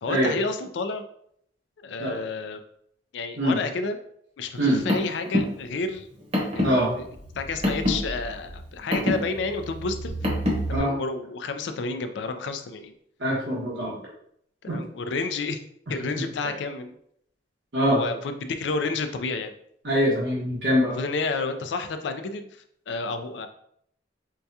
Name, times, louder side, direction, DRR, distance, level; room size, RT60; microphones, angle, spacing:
voice 1, 0.0-1.0 1.8-2.6 3.1-4.0 4.4-6.1 6.5-7.1 7.3-10.1 10.7-12.9 14.6-15.6 15.9-16.9 17.9-19.5 20.9-23.5, left 3 dB, 75° left, 8 dB, 0.4 m, -30 dB
Car, 4.5-10.8, left 1 dB, 35° right, 0.9 m, -28 dB
voice 2, 13.2-14.0 14.7-14.8 17.7-18.0 19.8-20.9, equal, 85° right, -6 dB, 1.3 m, -23 dB
4.6 x 2.3 x 2.7 m, 0.70 s
head